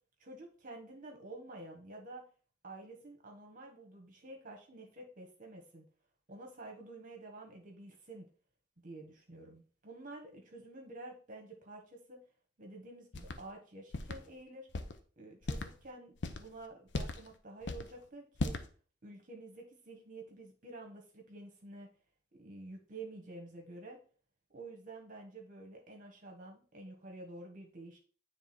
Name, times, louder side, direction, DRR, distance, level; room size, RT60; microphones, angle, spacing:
voice 1, 0.2-2.2 2.6-5.8 6.3-8.2 8.8-12.2 12.6-14.7 15.2-16.1 16.4-18.5 19.0-21.9 22.3-24.0 24.5-28.0, right 2 dB, 45° right, 1 dB, 1.3 m, -50 dB
sound 1, 13.1-13.4 13.9-14.2 14.7-15.0 15.4-15.7 16.2-16.5 16.9-17.3 17.6-17.9 18.4-18.7, left 2 dB, 75° left, 0.8 m, -36 dB
9.5 x 3.4 x 4.3 m, 0.41 s
head